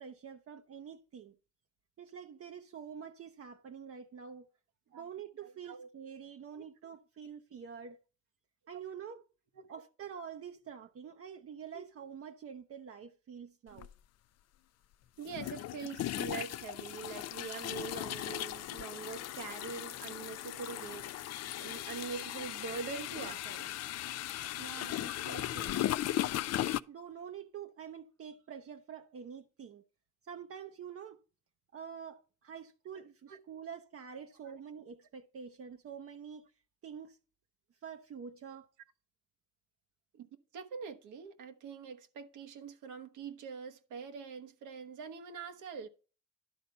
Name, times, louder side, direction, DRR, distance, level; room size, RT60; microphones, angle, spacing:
voice 1, 0.0-1.3 2.0-4.5 4.9-8.0 8.7-9.2 9.7-13.9 24.6-25.9 26.9-29.8 30.2-31.2 31.7-36.5 36.8-37.2 37.8-38.7, right 7 dB, 50° right, 0.8 m, -47 dB
voice 2, 5.4-5.9 9.6-9.7 11.7-11.8 13.7-13.9 15.2-23.9 33.3-33.4 34.4-34.6 40.1-40.3 40.5-45.9, right 5 dB, 80° right, 1.2 m, -44 dB
sound 1, 13.8-13.9 15.3-26.8, left 13 dB, 55° left, 0.4 m, -37 dB
11.5 x 4.1 x 5.5 m
cardioid pair, 90°, 30 cm